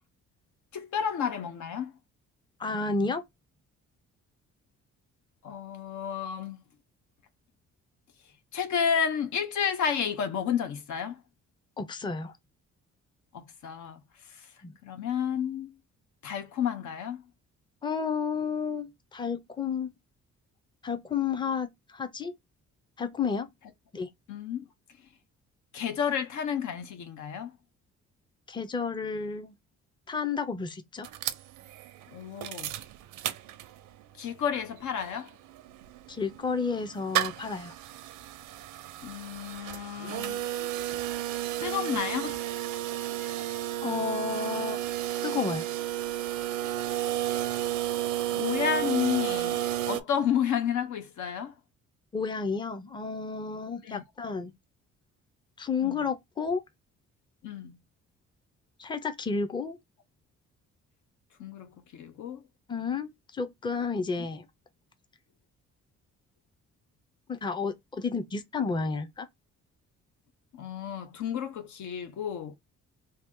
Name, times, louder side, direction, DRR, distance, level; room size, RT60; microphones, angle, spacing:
voice 1, 0.7-1.9 5.4-6.6 8.5-11.2 13.3-14.0 14.8-15.7 16.2-17.2 24.3-24.6 25.7-27.5 32.1-32.7 34.2-35.3 39.0-40.4 41.6-42.4 48.3-49.6 49.9-51.5 53.8-54.0 55.8-56.0 57.4-57.8 61.4-62.4 70.5-72.5, left 8 dB, 75° left, 0.7 m, -31 dB
voice 2, 2.6-3.2 11.8-12.3 14.6-14.7 17.8-19.9 20.8-22.3 23.0-23.5 23.9-24.1 28.5-29.5 30.1-31.1 36.1-37.7 43.8-44.8 45.2-45.7 52.1-54.5 55.6-56.6 58.8-59.8 62.7-64.5 67.3-69.3, left 5 dB, 15° left, 0.6 m, -31 dB
sound 1, 31.0-34.0 34.4-34.5 34.7-50.0, right 13 dB, 85° right, 0.5 m, -32 dB
2.8 x 2.6 x 3.5 m
cardioid pair, 90°, 30 cm